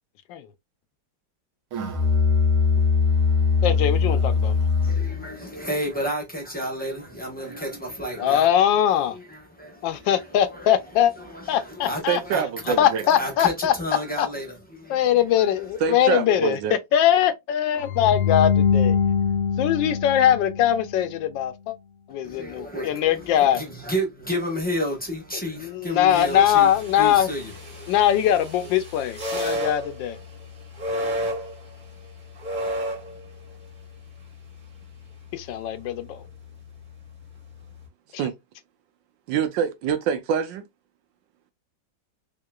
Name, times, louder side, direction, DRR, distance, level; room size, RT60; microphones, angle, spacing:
Musical instrument, 1.7-5.2, left 5 dB, 60° right, 1.3 m, -21 dB
voice 1, 3.6-4.7 8.2-9.2 9.8-11.1 11.5-12.2 12.8-13.7 14.2-14.3 14.9-19.0 19.6-21.7 22.1-23.6 25.4-27.3 27.9-30.2 35.3-36.2, left 10 dB, 80° left, 1.3 m, -21 dB
voice 2, 4.8-8.6 9.1-10.7 11.2-15.7 22.2-28.4, equal, 5° left, 0.7 m, -32 dB
voice 3, 12.1-13.0 15.8-16.8 38.2-38.3 39.3-40.6, right 7 dB, 80° right, 1.4 m, -25 dB
sound 1, 17.8-21.0, left 7 dB, 60° left, 0.8 m, -23 dB
sound 2, 26.1-37.9, equal, 25° right, 1.5 m, -34 dB
3.7 x 3.6 x 2.2 m
omnidirectional pair, 2.0 m